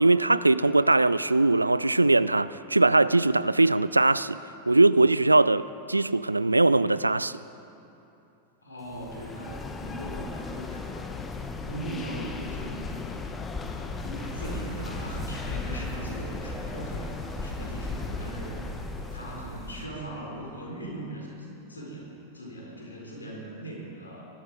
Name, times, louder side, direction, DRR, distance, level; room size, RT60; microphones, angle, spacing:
voice 1, 0.0-4.4 4.7-7.4, right 2 dB, 85° right, 17 dB, 0.3 m, -21 dB
voice 2, 8.6-13.1 13.7-17.1 17.4-18.6 19.1-24.3, right 1 dB, 75° left, -3 dB, 4.4 m, -40 dB
sound 1, 8.9-19.7, left 4 dB, 20° left, 1.1 m, -36 dB
sound 2, 14.1-19.9, right 2 dB, 35° right, 3.7 m, -40 dB
21.5 x 12.5 x 4.9 m, 3.0 s
figure-of-eight pair, 90°, 0 cm